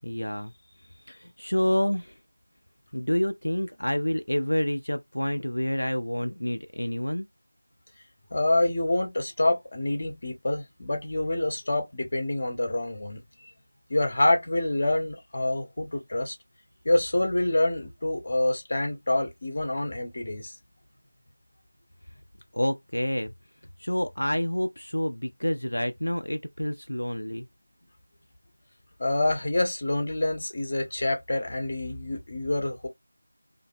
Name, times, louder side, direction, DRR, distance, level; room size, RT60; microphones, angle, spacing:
voice 1, 0.0-0.5 1.0-2.2 2.9-7.3 22.5-23.3 23.8-27.5, equal, 75° left, 0.3 m, -28 dB
voice 2, 8.3-13.2 13.9-16.4 16.8-20.5 29.0-32.9, left 1 dB, 35° left, 0.7 m, -26 dB
2.5 x 2.1 x 2.5 m
figure-of-eight pair, 170°, 0 cm